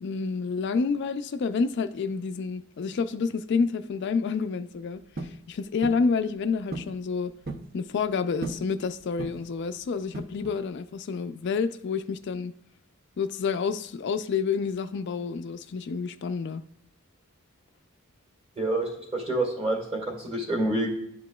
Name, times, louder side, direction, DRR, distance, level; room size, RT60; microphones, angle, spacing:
voice 1, 0.0-7.3 7.7-12.5 13.2-16.6, left 5 dB, 55° left, 0.3 m, -29 dB
sound 1, 5.2-5.4 5.8-6.1 6.7-7.0 7.2-7.7 8.4-8.7 9.2-9.6 10.1-10.6, right 2 dB, 45° right, 0.6 m, -36 dB
voice 2, 18.6-20.9, right 1 dB, 30° right, 1.9 m, -28 dB
11.0 x 4.8 x 2.2 m
head